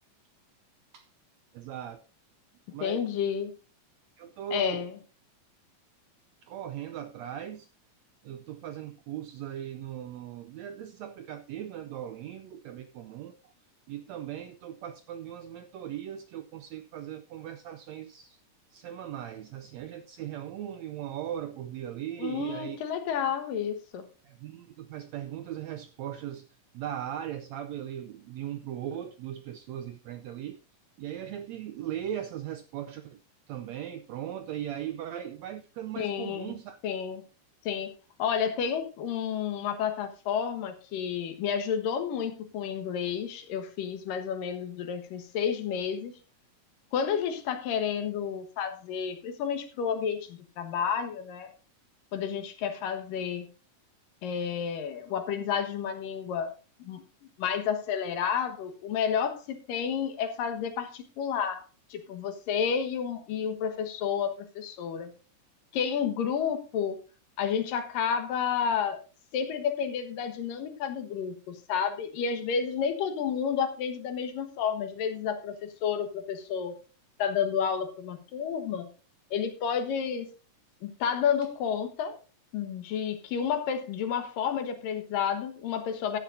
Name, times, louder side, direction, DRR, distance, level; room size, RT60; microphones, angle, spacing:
voice 1, 1.5-2.0 2.7-3.0 4.2-4.9 6.4-7.7 8.2-13.5 13.9-18.4 18.7-22.8 24.2-26.5 26.7-30.6 31.0-33.2 33.5-36.8, right 10 dB, 80° right, 1.5 m, -38 dB
voice 2, 2.8-3.5 4.5-4.9 22.2-24.1 36.0-36.6 36.8-37.2 37.6-37.9 38.2-46.1 46.9-51.5 52.1-53.5 54.2-56.5 56.8-57.0 57.4-61.6 61.9-65.1 65.7-67.0 67.4-69.0 69.3-76.8 77.2-78.9 79.3-80.3 80.8-82.2 82.5-86.2, left 7 dB, 85° left, 3.1 m, -30 dB
15.0 x 10.5 x 2.6 m
omnidirectional pair, 3.8 m